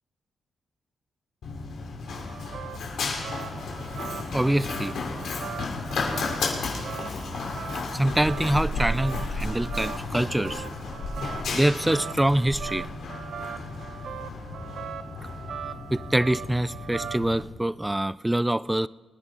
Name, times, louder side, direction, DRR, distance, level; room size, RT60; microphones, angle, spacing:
Run, 1.4-17.5, left 3 dB, 75° left, 2.9 m, -33 dB
sound 1, 2.1-17.4, right 8 dB, 70° right, 0.7 m, -41 dB
voice 1, 4.3-4.9 7.9-10.6 11.5-12.9 15.9-18.9, right 1 dB, 10° right, 0.4 m, -25 dB
24.5 x 9.9 x 3.9 m
supercardioid pair, 60°, 0 cm